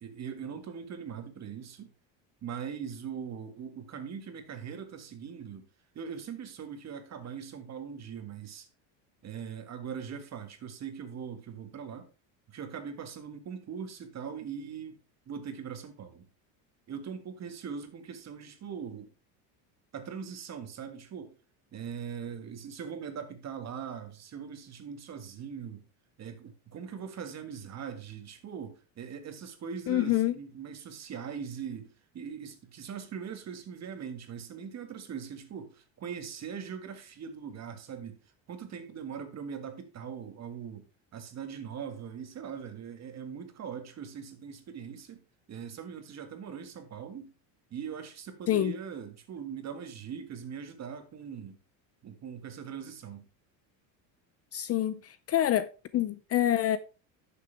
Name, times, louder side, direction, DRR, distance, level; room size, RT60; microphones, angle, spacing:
voice 1, 0.0-1.9 2.4-5.7 5.9-8.7 9.2-12.1 12.5-15.0 15.3-16.3 16.9-19.1 19.9-21.4 21.7-25.8 26.2-38.2 38.5-40.8 41.1-45.2 45.5-47.3 47.7-51.6 52.0-53.3, right 7 dB, 40° right, 1.9 m, -41 dB
voice 2, 29.9-30.3 48.5-48.7 54.5-56.8, left 12 dB, 35° left, 0.5 m, -27 dB
11.0 x 6.9 x 3.5 m
cardioid pair, 120°, 42 cm